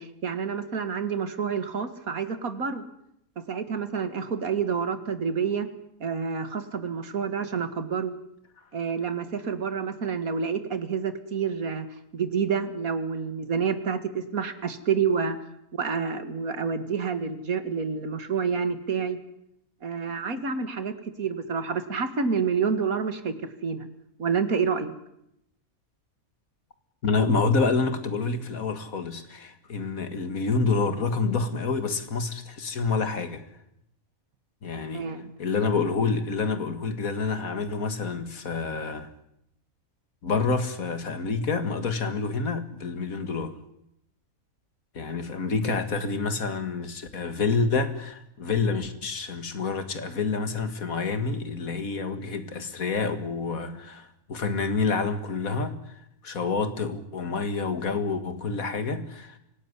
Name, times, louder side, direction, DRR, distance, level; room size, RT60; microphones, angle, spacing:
voice 1, 0.0-2.8 3.4-5.7 6.0-8.1 8.7-11.9 12.1-15.4 15.7-19.2 19.8-23.9 24.2-24.9 34.9-35.3, right 6 dB, 85° right, 2.3 m, -28 dB
voice 2, 27.0-33.4 34.6-35.1 35.4-39.1 40.2-43.6 44.9-55.9 56.2-59.4, left 4 dB, 80° left, 2.4 m, -28 dB
25.5 x 18.0 x 9.7 m
omnidirectional pair, 1.5 m